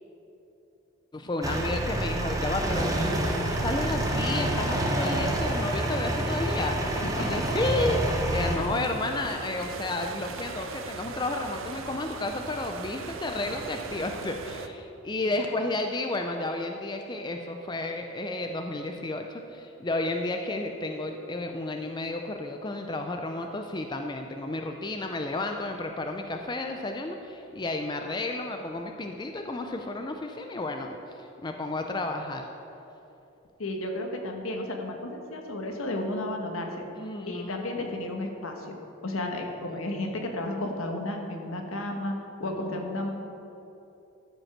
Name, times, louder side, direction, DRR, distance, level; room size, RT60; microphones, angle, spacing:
voice 1, 1.1-2.9 3.3-8.0 8.3-32.5 37.0-37.9 39.7-39.8 42.5-42.7, left 2 dB, 20° left, 4 dB, 0.4 m, -32 dB
sound 1, 1.4-8.6, right 1 dB, 15° right, 0.9 m, -28 dB
sound 2, 2.9-14.7, right 4 dB, 70° right, 0.6 m, -40 dB
voice 2, 7.0-7.5 8.5-8.6 9.2-9.3 15.2-15.5 33.6-36.8 37.3-38.7 39.0-42.1 42.4-43.1, left 1 dB, 80° left, 3 dB, 1.2 m, -33 dB
13.0 x 5.3 x 6.0 m, 3.0 s
head